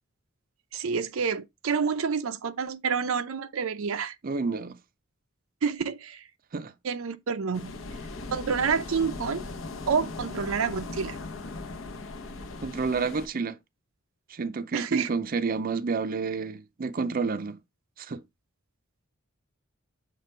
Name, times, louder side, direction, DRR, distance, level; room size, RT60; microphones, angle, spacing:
voice 1, 0.7-4.1 5.6-6.2 6.8-7.7 8.3-9.4 9.9-11.2 14.7-15.1, right 6 dB, 90° right, 0.5 m, -28 dB
voice 2, 4.2-4.8 6.5-6.7 12.6-13.6 14.3-17.6 18.0-18.2, right 4 dB, 45° right, 0.5 m, -29 dB
sound 1, 7.5-13.3, left 3 dB, 65° left, 0.8 m, -38 dB
6.8 x 3.3 x 4.3 m
head